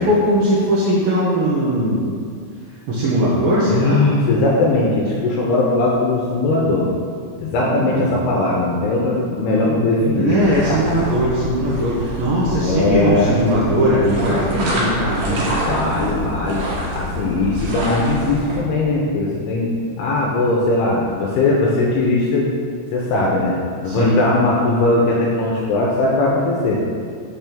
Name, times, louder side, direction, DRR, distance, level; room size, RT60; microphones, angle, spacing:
voice 1, 0.0-2.0 2.7-4.1 7.7-8.2 10.1-15.5 17.5-17.7 23.9-24.2, equal, 80° right, -7 dB, 2.0 m, -19 dB
voice 2, 3.7-6.9 7.4-10.4 10.7-10.8 12.6-13.3 15.7-16.6 16.9-19.7 20.0-22.5 22.9-23.5 23.8-26.8, left 2 dB, 80° left, -4 dB, 2.3 m, -19 dB
sound 1, 10.4-18.6, equal, 65° right, 2.3 m, -27 dB
6.7 x 3.4 x 5.8 m, 2.2 s
omnidirectional pair, 5.1 m